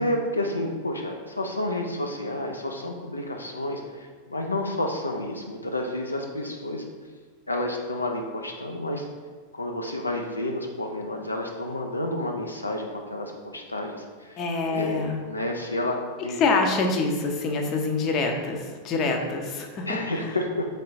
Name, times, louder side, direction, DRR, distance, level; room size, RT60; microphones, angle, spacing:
voice 1, 0.0-6.8 7.5-9.1 9.5-14.4 14.7-16.4 19.9-20.7, left 1 dB, 80° left, 2 dB, 0.3 m, -30 dB
voice 2, 14.4-15.2 16.4-20.0, left 3 dB, 35° left, 3 dB, 0.6 m, -25 dB
3.7 x 3.3 x 4.0 m, 1.5 s
figure-of-eight pair, 90°, 0 cm